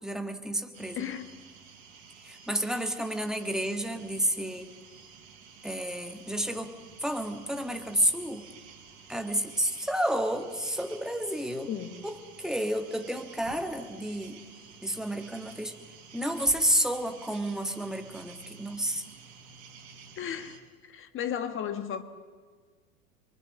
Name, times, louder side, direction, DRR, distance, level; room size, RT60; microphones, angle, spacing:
voice 1, 0.0-1.1 2.2-4.7 5.6-8.5 9.1-11.7 12.0-14.4 14.8-15.8 16.1-19.1, right 1 dB, ahead, 5 dB, 1.7 m, -31 dB
sound 1, 0.7-20.6, right 6 dB, 50° right, 4.1 m, -51 dB
voice 2, 0.9-1.3 11.7-12.0 20.2-20.6 20.8-22.0, left 9 dB, 30° left, 8 dB, 1.5 m, -34 dB
24.5 x 23.0 x 6.5 m, 1.5 s
figure-of-eight pair, 90°, 44 cm